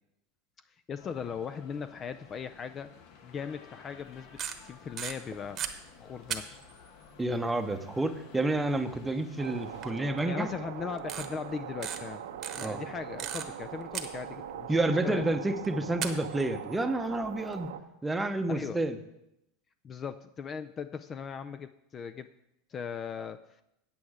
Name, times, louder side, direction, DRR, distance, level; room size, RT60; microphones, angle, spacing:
voice 1, 0.9-2.9 3.2-5.6 6.0-6.6 10.3-12.2 12.5-15.2 18.5-18.9 19.8-22.3 22.7-23.4, left 6 dB, 30° left, 11 dB, 0.4 m, -38 dB
sound 1, 1.0-9.9, left 6 dB, 60° left, 1.2 m, -53 dB
sound 2, 4.2-5.7 6.3-6.9 8.6-8.7 9.8-9.9 10.2-10.3 11.0-11.3 11.8-12.0 12.4-13.6 13.9-14.6 15.6-15.7 16.0-17.7, right 9 dB, 35° right, 1.0 m, -36 dB
voice 2, 7.2-10.5 12.6-12.8 14.7-17.7 18.0-19.0, right 2 dB, 10° right, 8 dB, 0.8 m, -29 dB
sound 3, 9.4-17.8, right 9 dB, 85° right, 0.8 m, -41 dB
8.6 x 8.4 x 4.8 m, 0.85 s
supercardioid pair, 115°, 0 cm